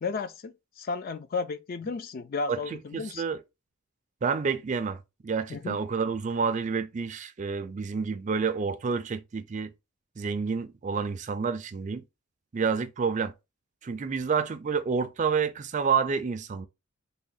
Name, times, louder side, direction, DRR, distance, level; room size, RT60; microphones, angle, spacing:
voice 1, 0.0-3.2 5.5-5.8, left 4 dB, 45° left, 0.3 m, -33 dB
voice 2, 2.5-3.4 4.2-9.7 10.2-12.0 12.5-13.3 13.8-16.7, right 5 dB, 35° right, 0.3 m, -29 dB
3.5 x 2.1 x 3.9 m
head